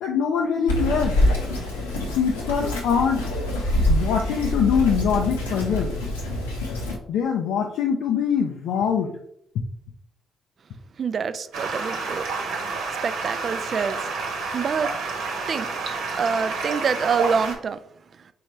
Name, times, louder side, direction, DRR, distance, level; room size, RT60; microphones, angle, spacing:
voice 1, 0.0-1.2 2.1-3.3 3.9-6.0 7.1-9.2 9.5-9.6, left 7 dB, 70° left, 2 dB, 0.4 m, -23 dB
Bird vocalization bird call bird song, 0.7-7.0, left 1 dB, 90° left, 0.8 m, -25 dB
voice 2, 11.0-12.3 13.0-14.1 14.5-15.1 15.5-17.8, right 6 dB, 50° right, 13 dB, 0.3 m, -26 dB
Stream, 11.5-17.6, right 4 dB, 70° right, 1.0 m, -29 dB
4.5 x 3.2 x 3.1 m, 0.71 s
hypercardioid pair, 40°, 0 cm